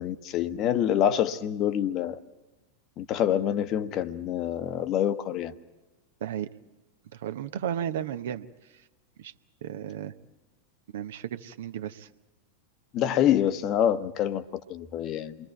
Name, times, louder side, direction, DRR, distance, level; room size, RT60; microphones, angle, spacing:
voice 1, 0.0-2.2 3.0-5.5 12.9-14.4 14.7-15.4, left 10 dB, 35° left, 12 dB, 1.1 m, -26 dB
voice 2, 7.1-8.5 9.2-9.3 9.6-10.1 10.9-12.1, right 10 dB, 60° right, 10 dB, 0.9 m, -34 dB
28.5 x 23.0 x 4.6 m, 1.1 s
figure-of-eight pair, 90°, 0 cm